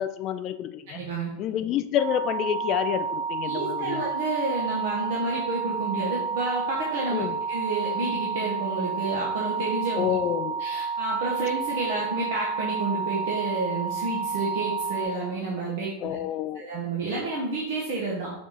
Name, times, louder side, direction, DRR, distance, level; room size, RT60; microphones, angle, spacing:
voice 1, 0.0-1.0 1.4-4.0 7.1-7.4 10.0-10.6 16.0-16.7, left 10 dB, 35° left, 11 dB, 0.4 m, -28 dB
voice 2, 0.9-1.3 3.4-10.1 10.6-16.2 16.5-18.3, right 2 dB, 50° right, -4 dB, 1.2 m, -30 dB
sound 1, 2.0-15.1, right 5 dB, 5° left, 1.5 m, -30 dB
6.4 x 3.6 x 4.2 m, 0.82 s
figure-of-eight pair, 90°, 0 cm